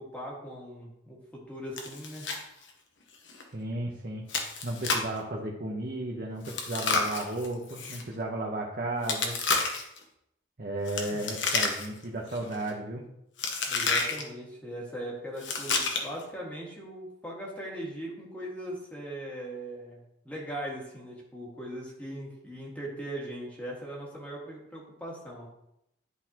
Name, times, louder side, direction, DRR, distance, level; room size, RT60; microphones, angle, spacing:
voice 1, 0.0-2.3 11.1-11.3 13.7-25.5, right 1 dB, 10° left, -4 dB, 1.8 m, -40 dB
Chewing mastication, 1.8-2.4 2.7-2.8 3.3-3.4 4.3-5.2 6.4-8.0 9.0-10.0 10.9-12.0 12.3-12.7 13.4-14.2 15.4-16.2, left 4 dB, 70° left, 1.0 m, -30 dB
voice 2, 3.5-9.4 10.6-13.0, right 1 dB, 50° right, -2 dB, 0.9 m, -34 dB
11.5 x 4.0 x 2.9 m, 0.81 s
head